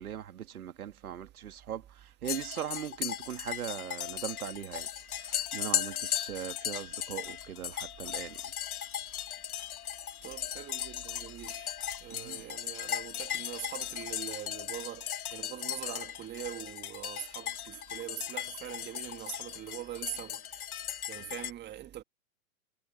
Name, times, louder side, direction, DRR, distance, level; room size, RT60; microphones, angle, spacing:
voice 1, 0.0-8.5 12.1-12.5 21.2-21.3, right 10 dB, 75° right, 2.4 m, -40 dB
sound 1, 2.2-21.5, left 10 dB, 75° left, 2.1 m, -37 dB
voice 2, 10.2-11.7 12.0-20.4 21.1-22.0, right 12 dB, 25° right, 2.0 m, -43 dB
hypercardioid pair, 120°, 44 cm